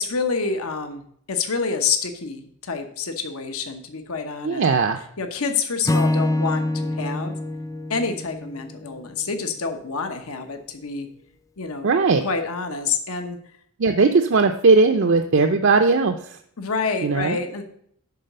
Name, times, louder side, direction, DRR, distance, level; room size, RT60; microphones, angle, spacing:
voice 1, 0.0-4.7 5.2-7.4 7.9-11.1 11.6-11.9 12.2-13.4 16.6-17.6, left 5 dB, 75° left, 7 dB, 1.0 m, -27 dB
voice 2, 4.4-5.0 11.8-12.2 13.8-16.4 17.0-17.4, right 4 dB, 55° right, 6 dB, 0.5 m, -18 dB
Acoustic guitar / Strum, 5.9-9.2, left 1 dB, 15° left, 0.3 m, -25 dB
10.5 x 4.0 x 6.6 m, 0.67 s
head